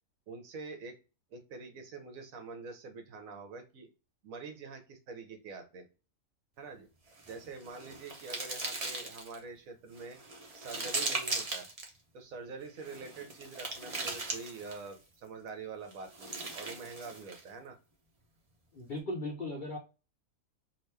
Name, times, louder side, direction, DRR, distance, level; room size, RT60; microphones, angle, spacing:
voice 1, 0.3-1.0 1.3-3.9 4.2-5.9 6.6-6.9 7.3-10.2 10.5-11.7 12.1-17.8, right 4 dB, 65° right, 5 dB, 1.1 m, -45 dB
sound 1, 7.1-9.4 9.9-11.9 12.8-14.9 15.9-17.5, right 3 dB, 35° right, 0.6 m, -38 dB
voice 2, 18.7-19.8, left 1 dB, 55° left, -1 dB, 0.5 m, -37 dB
3.0 x 2.6 x 3.2 m, 0.31 s
omnidirectional pair, 1.6 m